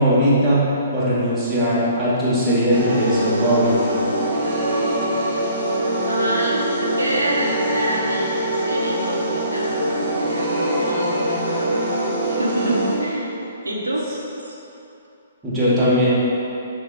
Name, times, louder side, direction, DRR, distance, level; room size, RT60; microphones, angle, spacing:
voice 1, 0.0-4.0 15.4-16.1, equal, 15° right, -10 dB, 1.2 m, -19 dB
sound 1, 2.7-12.9, right 1 dB, 50° right, 1.0 m, -23 dB
voice 2, 6.1-11.8 12.3-13.3 13.6-14.0 14.4-14.5, right 1 dB, 85° right, -4 dB, 0.8 m, -27 dB
5.6 x 2.2 x 3.7 m, 2.9 s
figure-of-eight pair, 125°, 0 cm